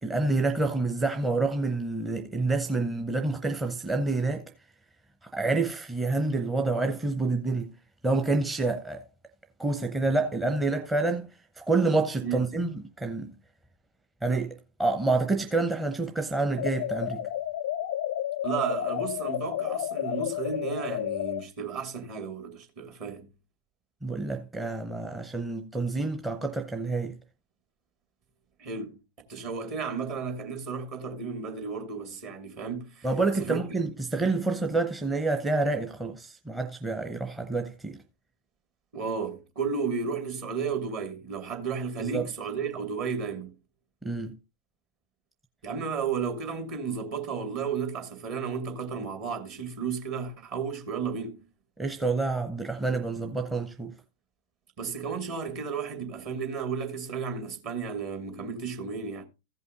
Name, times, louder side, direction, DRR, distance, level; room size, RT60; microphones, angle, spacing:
voice 1, 0.0-4.4 5.3-7.7 8.0-9.0 9.6-11.3 11.6-13.3 14.2-17.2 24.0-27.1 33.0-38.0 42.0-42.2 44.0-44.4 51.8-53.9, right 3 dB, 10° right, 0.9 m, -28 dB
sound 1, 16.6-21.4, left 12 dB, 55° left, 0.4 m, -31 dB
voice 2, 18.4-23.3 28.6-29.0 29.3-33.1 33.4-33.8 38.9-43.5 45.6-51.4 54.8-59.2, right 5 dB, 45° right, 2.5 m, -33 dB
15.0 x 5.5 x 3.9 m
figure-of-eight pair, 90°, 0 cm